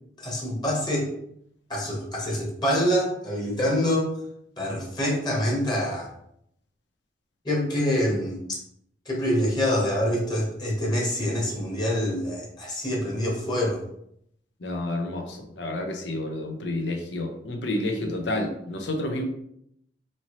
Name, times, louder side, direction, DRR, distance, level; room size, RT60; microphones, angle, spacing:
voice 1, 0.2-1.1 1.7-4.1 4.6-6.1 7.4-8.4 9.0-13.8, equal, 25° left, -3 dB, 1.2 m, -26 dB
voice 2, 14.6-19.2, left 1 dB, 80° left, 3 dB, 0.8 m, -30 dB
4.4 x 2.8 x 3.0 m, 0.72 s
head